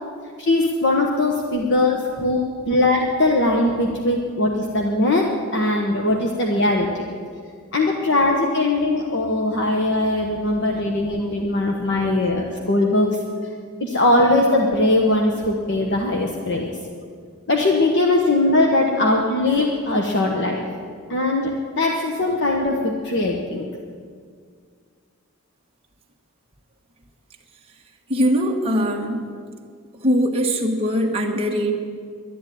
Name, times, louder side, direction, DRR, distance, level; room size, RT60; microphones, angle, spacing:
voice 1, 0.4-7.0 7.7-13.1 13.8-16.8 17.5-20.6 21.1-23.6, left 2 dB, 50° left, 1 dB, 1.2 m, -20 dB
voice 2, 28.1-29.2 30.0-31.7, equal, 25° right, 0 dB, 1.5 m, -21 dB
11.5 x 11.0 x 9.2 m, 2.1 s
head